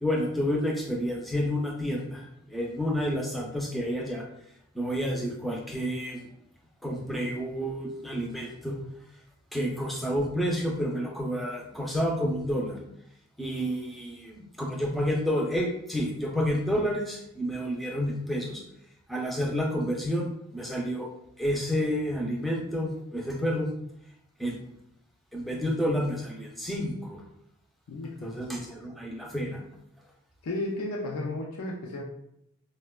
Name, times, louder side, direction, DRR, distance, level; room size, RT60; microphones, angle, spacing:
voice 1, 0.0-4.2 4.8-6.2 6.8-8.7 9.5-12.8 13.4-18.6 19.1-20.2 20.5-21.1 21.4-23.7 24.4-24.6 25.3-27.2 28.2-29.6, equal, ahead, -1 dB, 0.4 m, -29 dB
voice 2, 27.9-28.4 30.4-32.0, left 2 dB, 85° left, -1 dB, 0.4 m, -33 dB
4.2 x 2.1 x 2.2 m, 0.75 s
head